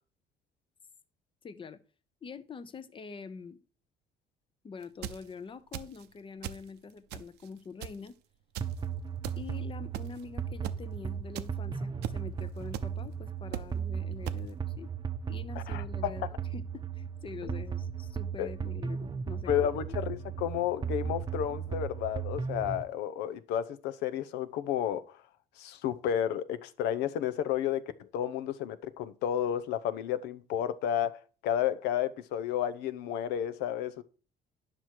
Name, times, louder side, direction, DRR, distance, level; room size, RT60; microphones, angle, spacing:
voice 1, 1.4-1.8 2.2-3.6 4.6-8.2 9.4-14.9 15.3-16.3 16.5-19.5 19.8-19.9, left 5 dB, 30° left, 0.7 m, -45 dB
sound 1, 4.8-5.2 5.7-6.1 6.4-6.7 7.1-7.5 7.8-8.1 8.6-8.7 9.2-9.4 9.9-10.2 10.6-10.8 11.4-11.5 12.0-12.2 12.7-12.8 13.5-13.7 14.3-14.4, right 11 dB, 85° right, 0.7 m, -37 dB
sound 2, 8.6-22.8, right 7 dB, 25° right, 0.7 m, -36 dB
voice 2, 15.6-16.1 17.4-17.5 18.4-18.5 19.5-25.2 25.6-34.0, left 10 dB, 90° left, 0.7 m, -32 dB
9.8 x 6.0 x 4.6 m
cardioid pair, 110°, 17 cm